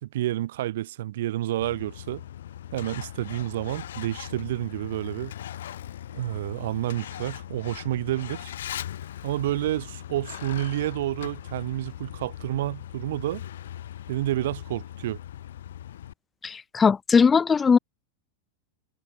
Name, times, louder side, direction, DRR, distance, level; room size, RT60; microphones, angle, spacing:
voice 1, 0.0-2.2 2.7-5.3 6.1-8.5 9.2-13.4 14.1-15.2, right 14 dB, 70° right, 0.5 m, -29 dB
Truck, 1.6-16.1, left 11 dB, 80° left, 2.3 m, -39 dB
voice 2, 16.4-17.8, left 5 dB, 20° left, 0.3 m, -19 dB
hypercardioid pair, 110°, 0 cm